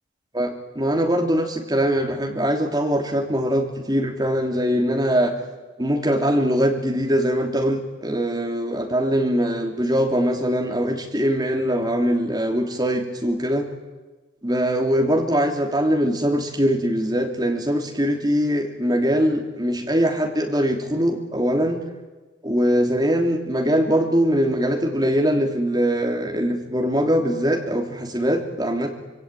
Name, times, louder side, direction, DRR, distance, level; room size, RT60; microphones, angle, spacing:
voice 1, 0.3-5.3 5.8-13.7 14.4-21.8 22.4-28.9, equal, 20° right, 2 dB, 3.1 m, -22 dB
26.0 x 22.0 x 9.2 m, 1.2 s
head